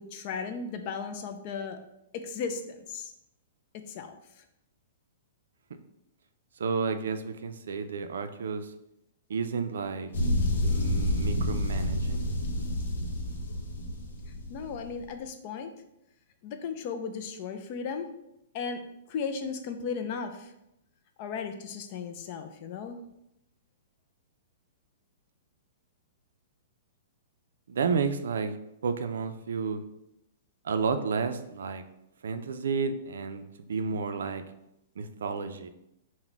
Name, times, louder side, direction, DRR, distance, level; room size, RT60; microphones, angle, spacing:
voice 1, 0.0-1.8 2.1-3.1 3.7-4.4 14.5-15.7 16.4-18.1 18.5-18.8 19.1-20.5 21.2-23.0, left 5 dB, 30° left, 7 dB, 0.3 m, -36 dB
voice 2, 6.6-8.7 9.3-10.1 10.5-12.3 27.7-28.6 28.8-29.8 30.6-31.8 32.2-34.4 35.0-35.7, right 5 dB, 90° right, 9 dB, 0.4 m, -31 dB
sound 1, 10.1-15.0, left 1 dB, 80° left, 0.8 m, -29 dB
4.0 x 2.1 x 4.4 m, 0.84 s
hypercardioid pair, 180°, 0 cm